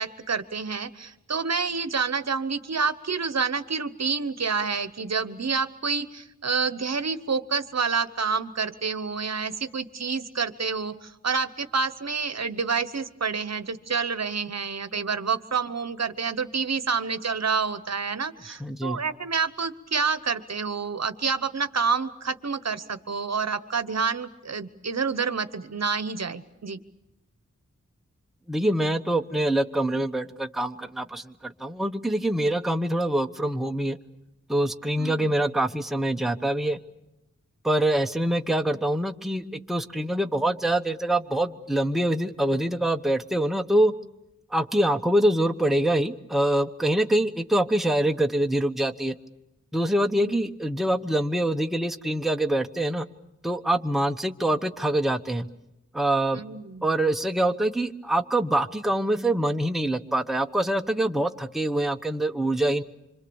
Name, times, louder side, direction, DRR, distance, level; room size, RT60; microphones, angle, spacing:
voice 1, 0.0-26.8 35.0-35.3 50.2-50.4 56.3-56.9, right 5 dB, 60° right, 12 dB, 1.0 m, -28 dB
voice 2, 18.6-19.0 28.5-34.0 34.5-36.8 37.6-43.9 44.5-49.1 49.7-53.1 53.4-55.5 55.9-56.4 56.8-62.8, right 1 dB, ahead, 6 dB, 0.9 m, -25 dB
26.0 x 26.0 x 7.1 m, 0.91 s
wide cardioid pair, 85°, 30 cm